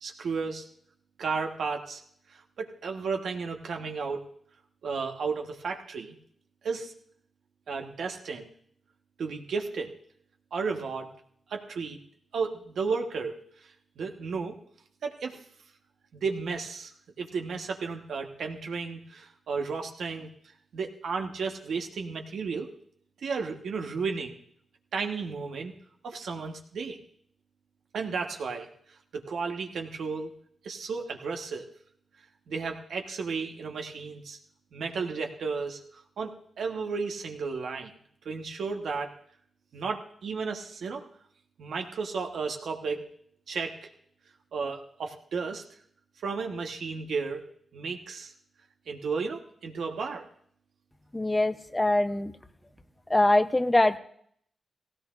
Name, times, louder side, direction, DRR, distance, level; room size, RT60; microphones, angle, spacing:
voice 1, 0.0-0.7 1.2-2.0 2.6-4.2 4.8-6.2 6.6-6.9 7.7-8.5 9.2-9.9 10.5-11.1 11.5-12.0 12.3-13.4 14.0-14.5 15.0-15.4 16.1-16.9 17.2-20.3 20.7-22.7 23.2-24.4 24.9-25.7 26.0-27.0 27.9-28.7 29.1-30.3 30.6-31.7 32.5-34.4 34.7-35.8 36.2-37.9 38.2-39.1 39.7-41.0 41.6-43.1 43.5-43.9 44.5-45.6 46.2-47.4 47.7-48.3 48.9-50.3, right 5 dB, 75° right, 3 dB, 1.3 m, -33 dB
voice 2, 51.1-52.3 53.1-54.0, left 1 dB, 20° left, 10 dB, 0.7 m, -23 dB
16.5 x 16.5 x 2.6 m, 0.65 s
cardioid pair, 55°, 0 cm